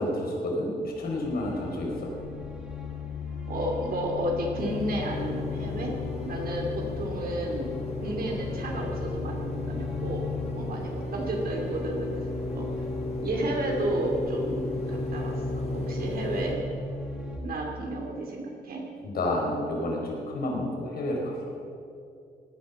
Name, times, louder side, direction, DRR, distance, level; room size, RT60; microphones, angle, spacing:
voice 1, 0.0-2.1 19.0-21.3, left 1 dB, 65° left, -1 dB, 4.8 m, -30 dB
sound 1, 0.9-17.4, left 5 dB, 5° right, 4.1 m, -37 dB
voice 2, 3.5-10.3 10.5-12.2 12.5-12.7 13.2-16.6 17.2-18.9, right 1 dB, 60° right, 0 dB, 2.7 m, -32 dB
sound 2, 4.6-16.5, left 2 dB, 40° left, 2.5 m, -35 dB
17.5 x 10.5 x 7.4 m, 2.5 s
cardioid pair, 120°, 17 cm